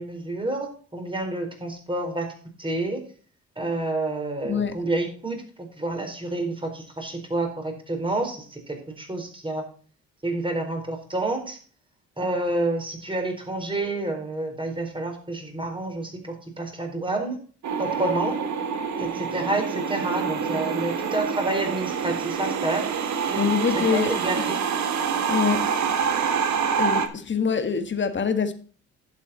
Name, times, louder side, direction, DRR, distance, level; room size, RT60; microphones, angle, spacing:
voice 1, 0.0-2.3 2.6-3.0 3.6-9.6 10.2-11.6 12.2-17.4 17.8-18.4 19.0-22.9 23.3-23.5 23.7-24.6, right 2 dB, 15° right, 4.3 m, -29 dB
voice 2, 4.5-4.8 23.4-24.1 25.3-25.7 26.8-28.5, left 6 dB, 40° left, 1.8 m, -24 dB
sound 1, 17.6-27.1, right 6 dB, 70° right, 1.6 m, -26 dB
11.5 x 7.7 x 4.2 m
cardioid pair, 90°, 30 cm